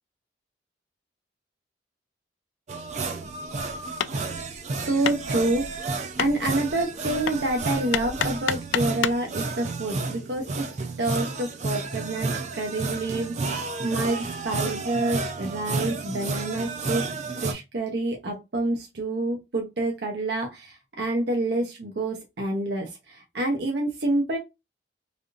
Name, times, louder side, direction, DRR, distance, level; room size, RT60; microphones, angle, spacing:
sound 1, 2.7-17.5, right 3 dB, 40° right, 0.4 m, -31 dB
Hammer, 3.2-9.3, left 9 dB, 85° left, 0.3 m, -32 dB
voice 1, 4.8-5.9 6.2-17.0 17.4-24.4, right 2 dB, 65° right, 1 dB, 0.7 m, -28 dB
3.4 x 2.5 x 2.4 m, 0.23 s
head